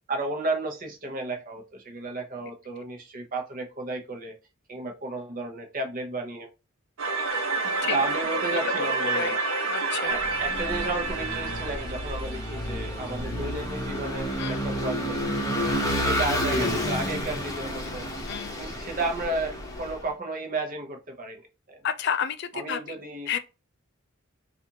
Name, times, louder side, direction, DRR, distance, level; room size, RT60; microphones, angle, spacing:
voice 1, 0.1-4.3 4.7-6.5 7.9-9.4 10.0-15.3 15.9-18.1 18.6-21.4 21.7-21.8 22.5-23.3, right 2 dB, 40° right, 0.8 m, -33 dB
sound 1, 7.0-13.9, right 3 dB, 70° right, 0.8 m, -29 dB
voice 2, 9.7-10.2 14.4-14.6 18.3-18.6 21.8-23.0 23.3-23.4, left 8 dB, 55° left, 0.4 m, -30 dB
Vehicle / Engine, 10.2-20.0, equal, 15° left, 0.8 m, -30 dB
4.1 x 2.5 x 2.8 m
head